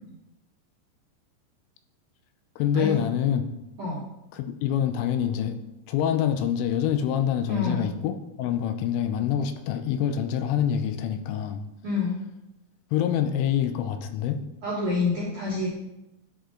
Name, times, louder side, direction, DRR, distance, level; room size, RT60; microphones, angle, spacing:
voice 1, 2.6-3.5 4.3-5.6 5.9-8.1 8.4-11.6 12.9-14.4, left 9 dB, 85° left, 8 dB, 3.1 m, -26 dB
voice 2, 7.5-7.9 11.8-12.2 14.6-15.7, left 3 dB, 60° right, -5 dB, 2.1 m, -27 dB
11.5 x 5.2 x 3.8 m, 0.93 s
omnidirectional pair, 5.7 m